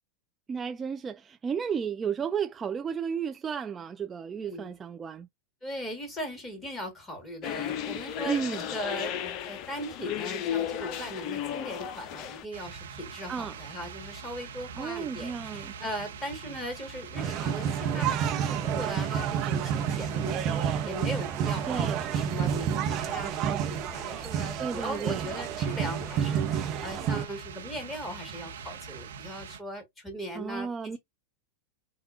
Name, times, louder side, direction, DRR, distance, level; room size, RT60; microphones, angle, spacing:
voice 1, 0.5-5.3 8.3-8.7 13.3-13.6 14.8-15.7 21.7-22.1 24.6-25.3 30.4-31.0, right 6 dB, 20° right, 0.4 m, -33 dB
voice 2, 4.4-4.8 5.6-8.4 8.7-31.0, equal, 15° left, 2.0 m, -39 dB
sound 1, 7.4-12.4, left 10 dB, 40° left, 0.5 m, -34 dB
sound 2, 12.5-29.6, right 6 dB, 65° right, 0.8 m, -44 dB
sound 3, 17.2-27.3, right 8 dB, 35° right, 0.8 m, -29 dB
5.2 x 2.3 x 2.7 m
figure-of-eight pair, 90°, 0 cm